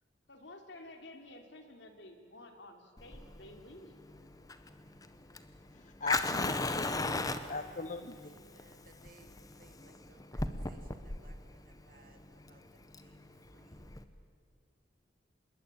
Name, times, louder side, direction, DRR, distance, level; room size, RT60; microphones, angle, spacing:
voice 1, 0.3-4.0, left 1 dB, 70° left, 5 dB, 3.1 m, -52 dB
Fire, 3.0-14.0, left 2 dB, 20° left, 1.0 m, -37 dB
voice 2, 5.7-7.2 7.5-8.3, left 3 dB, 40° left, 10 dB, 0.7 m, -40 dB
voice 3, 7.1-7.9 8.2-13.9, right 2 dB, 50° right, 5 dB, 2.6 m, -63 dB
26.5 x 21.5 x 9.0 m, 2.2 s
head